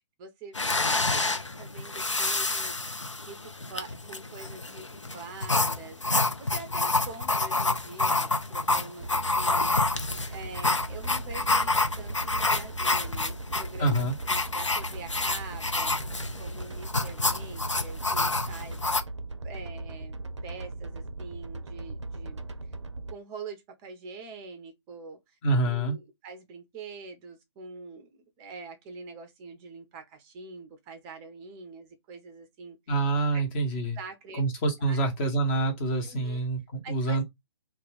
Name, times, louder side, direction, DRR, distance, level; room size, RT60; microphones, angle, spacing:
voice 1, 0.2-2.8 3.3-4.9 5.1-9.7 10.3-16.0 16.4-18.8 19.4-22.5 23.1-25.4 25.6-32.8 33.3-33.4 34.0-34.4 34.9-35.0 36.0-36.5 36.8-37.2, right 4 dB, 20° right, 0.5 m, -44 dB
sound 1, 0.5-19.0, left 2 dB, 90° left, 0.5 m, -28 dB
sound 2, 9.0-23.1, right 2 dB, 75° right, 0.5 m, -38 dB
voice 2, 13.8-14.1 25.4-25.9 32.9-34.0 34.4-37.2, right 2 dB, 25° left, 0.8 m, -26 dB
2.3 x 2.3 x 3.3 m
figure-of-eight pair, 130°, 15 cm